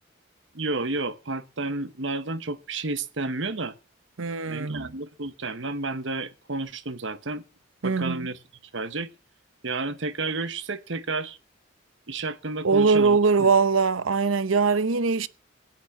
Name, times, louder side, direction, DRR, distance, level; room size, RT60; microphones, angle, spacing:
voice 1, 0.5-3.7 4.5-7.4 7.8-8.4 8.7-9.1 9.6-11.4 12.1-13.5, right 3 dB, 65° right, 1.2 m, -31 dB
voice 2, 4.2-4.9 7.8-8.3 12.6-15.3, right 4 dB, 90° right, 0.8 m, -22 dB
16.5 x 9.0 x 6.9 m
head